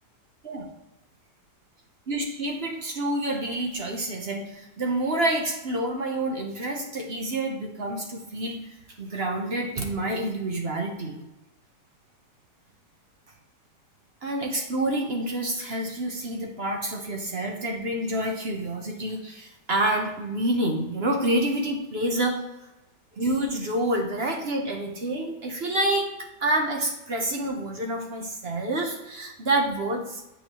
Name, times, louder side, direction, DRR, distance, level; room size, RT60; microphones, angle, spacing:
voice 1, 2.1-8.6 9.0-11.2 14.2-22.4 23.2-26.1 26.4-30.2, right 1 dB, 45° right, 1 dB, 0.9 m, -28 dB
8.3 x 5.4 x 2.9 m, 0.95 s
omnidirectional pair, 1.8 m